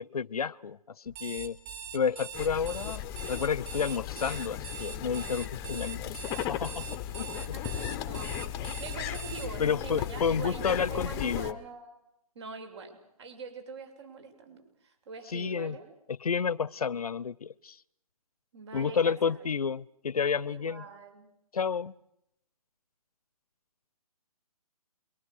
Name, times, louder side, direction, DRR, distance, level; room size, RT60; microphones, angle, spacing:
voice 1, 0.0-1.6 1.9-6.9 7.2-7.3 9.6-11.6 15.3-15.8 16.2-17.8 18.7-20.9 21.5-21.9, left 6 dB, 75° left, 22 dB, 0.9 m, -30 dB
Alarm, 1.1-9.5, right 7 dB, 25° right, 3.4 m, -42 dB
sound 1, 2.3-11.5, left 11 dB, 15° left, 1.1 m, -36 dB
voice 2, 7.3-12.0 12.4-15.9 18.5-19.5 20.5-21.3, right 4 dB, 45° right, 6 dB, 7.2 m, -44 dB
28.5 x 23.5 x 6.6 m, 0.79 s
hypercardioid pair, 150°, 19 cm